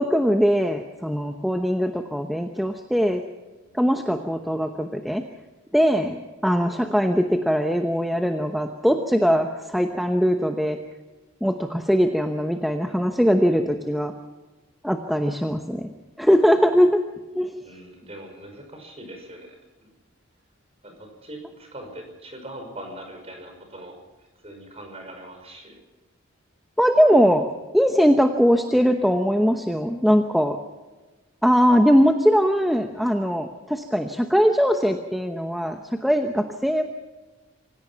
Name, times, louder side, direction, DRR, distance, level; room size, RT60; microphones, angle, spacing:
voice 1, 0.0-3.2 3.7-5.2 5.7-10.8 11.4-14.1 14.8-15.9 16.2-17.0 17.3-17.5 26.8-27.5 27.7-30.6 31.4-36.8, equal, ahead, 5 dB, 0.9 m, -21 dB
voice 2, 17.6-19.5 19.8-19.9 20.8-24.0 24.4-25.8, right 1 dB, 30° right, 4 dB, 5.6 m, -41 dB
26.0 x 17.0 x 5.8 m, 1.2 s
head